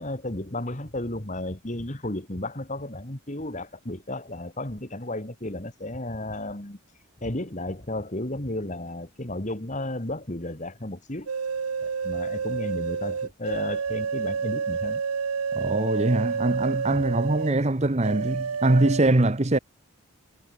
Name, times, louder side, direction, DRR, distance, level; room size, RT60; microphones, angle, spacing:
voice 1, 0.0-6.8 7.2-11.3 11.8-15.0, left 1 dB, 35° left, 2.4 m, -33 dB
sound 1, 11.3-17.6 18.0-19.0, right 5 dB, 80° right, 0.7 m, -29 dB
voice 2, 15.5-19.6, right 2 dB, 30° right, 0.9 m, -23 dB
head